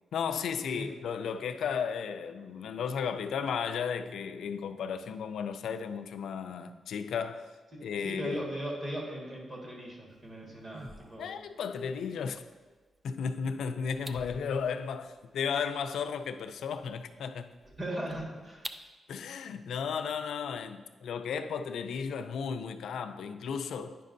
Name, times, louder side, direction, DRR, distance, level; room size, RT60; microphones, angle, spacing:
voice 1, 0.1-7.5 7.8-8.5 11.2-12.4 13.0-17.5 19.1-24.0, left 6 dB, 85° left, 0.4 m, -34 dB
voice 2, 7.7-11.3 17.8-18.6, right 1 dB, 30° right, 1.6 m, -38 dB
sound 1, 10.1-18.9, right 1 dB, 10° right, 0.3 m, -51 dB
9.8 x 5.3 x 2.6 m
wide cardioid pair, 125°, 0 cm